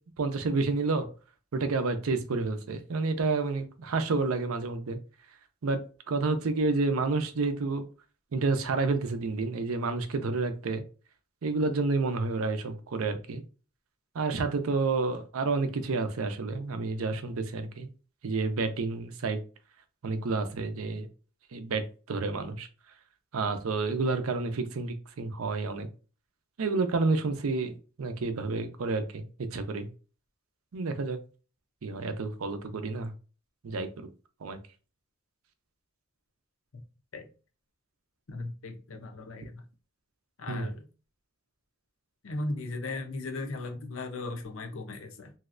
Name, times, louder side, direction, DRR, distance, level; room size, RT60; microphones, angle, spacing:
voice 1, 0.2-1.1 1.5-5.0 5.6-5.8 6.1-7.8 8.3-10.8 11.4-13.4 14.1-17.9 18.2-19.4 20.0-21.1 21.5-22.7 23.3-25.9 26.6-29.2 29.5-29.9 30.7-31.2 31.8-33.1 33.6-34.1 34.4-34.6 40.5-40.7, right 3 dB, 85° right, 9 dB, 0.5 m, -29 dB
voice 2, 38.3-39.6 40.4-40.9 42.2-45.3, left 2 dB, 70° left, 5 dB, 0.6 m, -37 dB
3.1 x 2.7 x 2.5 m, 0.36 s
head